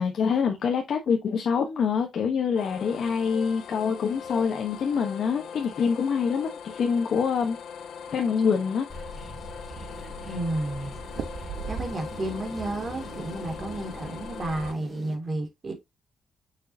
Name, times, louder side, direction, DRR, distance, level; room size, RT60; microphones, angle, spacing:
voice 1, 0.0-7.6 8.1-8.9, left 6 dB, 60° left, 1.1 m, -25 dB
sound 1, 2.5-14.7, left 7 dB, 80° left, 1.1 m, -41 dB
sound 2, 7.2-8.1 8.6-8.7 9.0-9.6 11.1-12.4 12.7-13.2, right 7 dB, 80° right, 1.0 m, -38 dB
sound 3, 8.9-15.1, right 1 dB, 5° left, 4.1 m, -41 dB
voice 2, 10.3-10.9 11.7-15.7, right 2 dB, 35° right, 2.5 m, -32 dB
6.5 x 6.3 x 2.8 m
wide cardioid pair, 155°, 0 cm